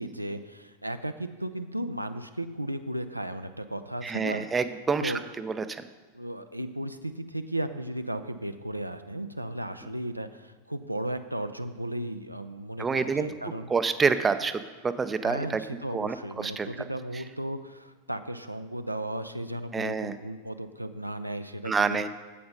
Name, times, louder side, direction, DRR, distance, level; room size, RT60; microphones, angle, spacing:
voice 1, 0.0-4.5 5.0-5.2 6.1-13.7 15.2-22.1, right 1 dB, 90° right, 9 dB, 0.5 m, -35 dB
voice 2, 4.0-5.8 12.8-13.3 13.7-15.6 15.9-16.9 19.7-20.2 21.6-22.1, right 5 dB, 15° right, 11 dB, 0.5 m, -28 dB
8.5 x 7.9 x 5.4 m, 1.3 s
figure-of-eight pair, 90°, 0 cm